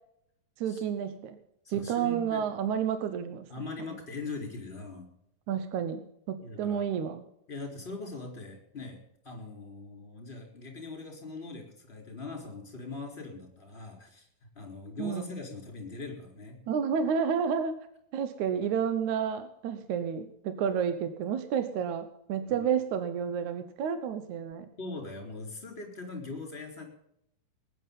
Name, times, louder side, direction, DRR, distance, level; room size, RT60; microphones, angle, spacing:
voice 1, 0.6-1.4 1.7-3.5 3.8-3.9 5.5-6.0 6.3-7.2 15.0-15.3 16.7-17.8 18.1-24.7, right 7 dB, 70° right, 10 dB, 2.1 m, -30 dB
voice 2, 1.6-2.4 3.5-5.1 6.4-6.8 7.5-14.3 14.5-16.6 22.5-22.7 24.8-26.8, left 3 dB, 15° left, 2 dB, 4.3 m, -41 dB
20.0 x 10.5 x 5.4 m, 0.77 s
omnidirectional pair, 4.0 m